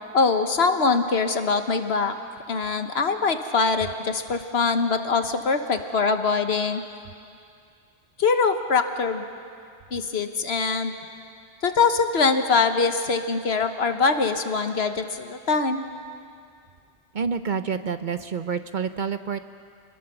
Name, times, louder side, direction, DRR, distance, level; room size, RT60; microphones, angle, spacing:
voice 1, 0.1-2.1 2.5-6.8 8.2-9.3 9.9-10.9 11.6-15.9, left 4 dB, 65° left, 8 dB, 1.4 m, -23 dB
voice 2, 17.1-19.4, right 6 dB, 50° right, 10 dB, 0.7 m, -28 dB
26.5 x 20.0 x 6.8 m, 2.4 s
omnidirectional pair, 1.1 m